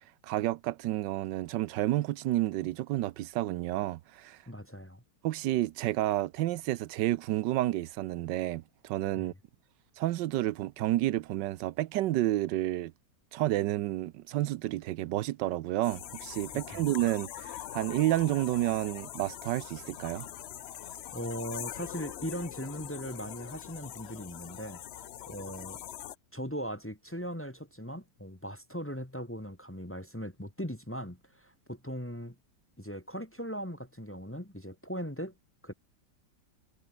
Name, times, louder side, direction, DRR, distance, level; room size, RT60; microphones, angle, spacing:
voice 1, 0.2-4.4 5.2-9.3 10.0-12.9 13.3-20.3, right 15 dB, 85° right, 1.3 m, -30 dB
voice 2, 4.5-5.0 9.1-9.3 16.7-16.8 21.1-25.8 26.3-32.3 32.8-35.3 35.6-35.7, equal, 10° left, 1.3 m, -39 dB
sound 1, 15.8-26.2, left 11 dB, 85° left, 0.5 m, -43 dB
omnidirectional pair, 1.9 m